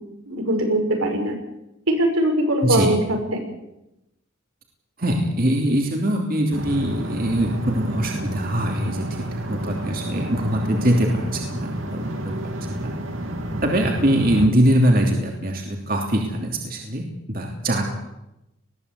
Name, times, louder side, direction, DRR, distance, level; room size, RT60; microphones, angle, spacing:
voice 1, 0.3-1.3 2.0-3.4, right 1 dB, 85° right, 3 dB, 5.9 m, -21 dB
voice 2, 2.6-3.0 5.0-9.1 9.3-12.9 13.6-18.0, right 1 dB, 45° right, 1 dB, 3.0 m, -22 dB
sound 1, 6.5-14.5, right 1 dB, 70° right, 3.4 m, -30 dB
20.5 x 16.5 x 8.4 m, 0.88 s
head